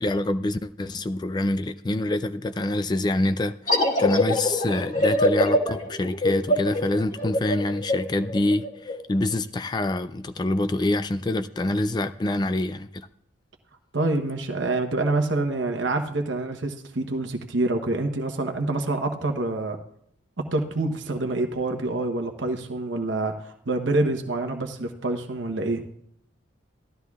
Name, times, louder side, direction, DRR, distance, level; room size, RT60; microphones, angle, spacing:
voice 1, 0.0-13.1, left 2 dB, 20° left, 0.3 m, -26 dB
sound 1, 3.7-9.0, left 1 dB, 40° left, 1.7 m, -23 dB
voice 2, 13.9-19.8 20.5-25.8, right 2 dB, 70° right, 0.9 m, -26 dB
16.5 x 13.0 x 2.4 m
head